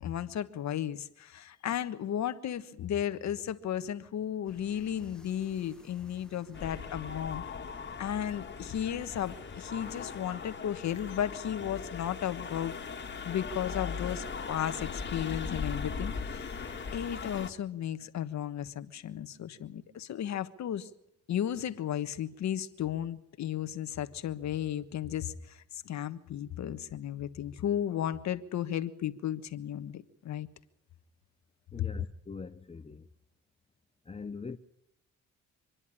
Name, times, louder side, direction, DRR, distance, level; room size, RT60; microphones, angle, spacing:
voice 1, 0.0-7.4 8.0-12.7 13.2-20.9 21.3-30.5 31.8-31.9, left 10 dB, 65° left, 1.4 m, -34 dB
sound 1, 4.5-10.2, left 1 dB, 5° left, 1.8 m, -56 dB
sound 2, 6.5-17.5, left 5 dB, 35° left, 2.1 m, -39 dB
voice 2, 31.7-33.1 34.0-34.6, left 5 dB, 20° left, 0.8 m, -42 dB
26.0 x 11.0 x 9.8 m
cardioid pair, 90°, 30 cm